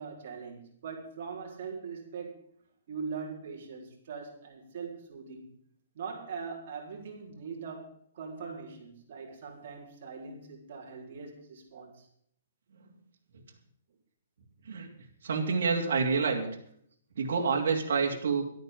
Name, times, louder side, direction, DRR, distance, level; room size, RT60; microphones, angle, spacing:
voice 1, 0.0-2.4 2.9-5.5 5.9-12.1, right 5 dB, 45° right, 0 dB, 4.2 m, -41 dB
voice 2, 15.2-16.5 17.2-18.4, right 5 dB, 70° right, 0 dB, 2.8 m, -27 dB
12.5 x 9.2 x 7.6 m, 0.66 s
hypercardioid pair, 170°, 0 cm